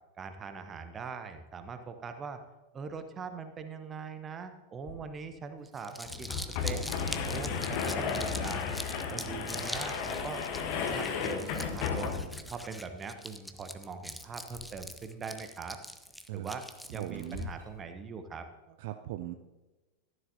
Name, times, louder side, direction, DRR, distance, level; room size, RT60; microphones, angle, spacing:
voice 1, 0.2-2.4 2.7-6.8 7.2-8.8 9.1-10.4 10.7-12.2 12.5-15.8 16.3-16.6 16.9-18.5, right 5 dB, 25° right, 8 dB, 0.9 m, -42 dB
sound 1, 4.9-5.0 5.2-5.3 6.1-12.5, left 6 dB, 45° left, 1.2 m, -34 dB
Crumpling crinkling, 5.7-17.4, equal, ahead, 0.6 m, -43 dB
sound 2, 10.8-12.0 14.0-15.1 15.7-15.8 16.3-17.6, left 2 dB, 85° right, 2.9 m, -48 dB
voice 2, 16.9-17.5 18.8-19.3, right 13 dB, 50° right, 9 dB, 0.4 m, -39 dB
12.5 x 11.0 x 2.8 m, 1.1 s
figure-of-eight pair, 90°, 0 cm